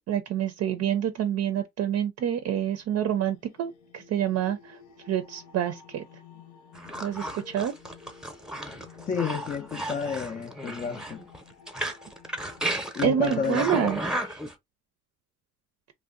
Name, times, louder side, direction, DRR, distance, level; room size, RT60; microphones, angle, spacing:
voice 1, 0.1-4.8 5.1-6.0 7.0-7.7 13.0-14.4, right 10 dB, 55° right, 0.5 m, -27 dB
sound 1, 2.7-12.9, left 6 dB, 75° left, 1.0 m, -52 dB
sound 2, 6.7-14.5, right 1 dB, ahead, 0.7 m, -34 dB
voice 2, 9.1-11.2 12.9-13.9, left 6 dB, 30° left, 0.4 m, -30 dB
2.5 x 2.1 x 3.7 m
cardioid pair, 90°, 30 cm